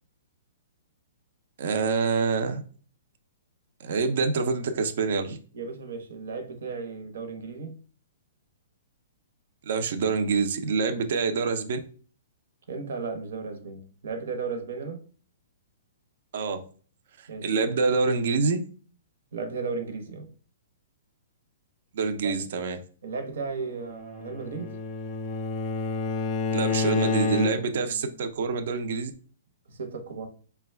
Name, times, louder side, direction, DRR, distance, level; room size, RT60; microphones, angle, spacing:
voice 1, 1.6-2.6 3.8-5.4 9.7-11.8 16.3-16.6 17.2-18.6 21.9-22.8 26.5-29.1, right 4 dB, 50° right, 0.5 m, -26 dB
voice 2, 5.5-7.8 12.7-15.0 17.3-17.5 19.3-20.3 22.2-22.3 23.0-24.8 29.7-30.3, right 4 dB, 65° right, 0.9 m, -35 dB
Bowed string instrument, 23.9-27.9, left 4 dB, 20° left, 0.4 m, -29 dB
5.0 x 2.2 x 3.3 m
hypercardioid pair, 170°, 0 cm